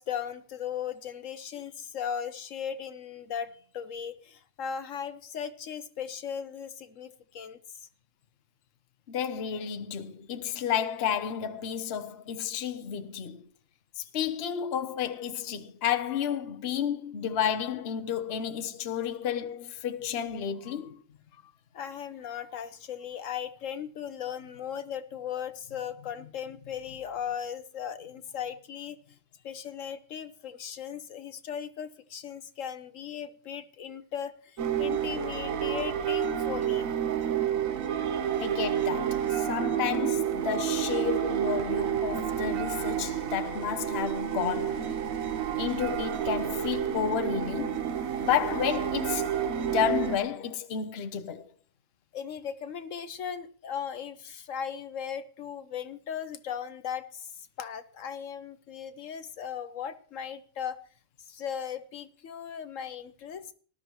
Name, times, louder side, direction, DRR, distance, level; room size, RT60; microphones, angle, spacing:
voice 1, 0.0-7.9 21.7-29.1 29.4-36.9 52.1-60.8 61.2-63.5, left 8 dB, 70° left, 1.2 m, -37 dB
voice 2, 9.1-13.5 14.0-21.0 38.4-45.0 45.6-47.9 48.2-49.3 49.7-51.5, left 8 dB, 55° left, 1.0 m, -31 dB
sound 1, 34.6-50.2, right 9 dB, 80° right, 1.3 m, -30 dB
19.0 x 12.5 x 3.1 m
omnidirectional pair, 1.4 m